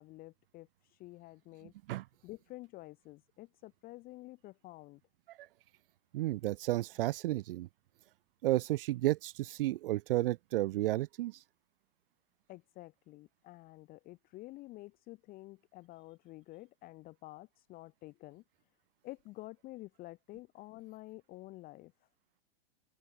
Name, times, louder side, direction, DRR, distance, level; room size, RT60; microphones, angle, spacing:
voice 1, 0.0-1.7 2.2-5.0 12.5-18.4 19.0-21.9, left 19 dB, 30° left, 0.8 m, -50 dB
voice 2, 6.1-7.7 8.4-11.4, right 16 dB, 60° right, 0.5 m, -32 dB
open air
hypercardioid pair, 130°, 32 cm